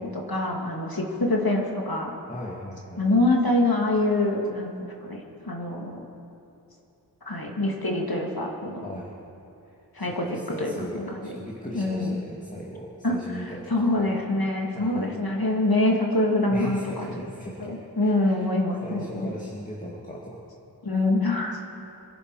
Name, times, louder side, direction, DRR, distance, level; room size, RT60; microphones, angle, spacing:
voice 1, 0.0-2.1 3.0-4.7 5.0-6.0 7.3-8.9 9.9-10.3 10.6-11.3 11.7-12.1 13.0-13.2 13.7-17.1 17.6-19.3 20.8-21.6, left 2 dB, 60° left, 0 dB, 2.3 m, -25 dB
voice 2, 2.3-3.1 8.8-9.1 9.6-14.1 14.7-15.1 16.5-18.5 18.8-20.4, equal, 20° left, -4 dB, 2.1 m, -38 dB
25.5 x 11.5 x 4.8 m, 2.8 s
wide cardioid pair, 40°, 41 cm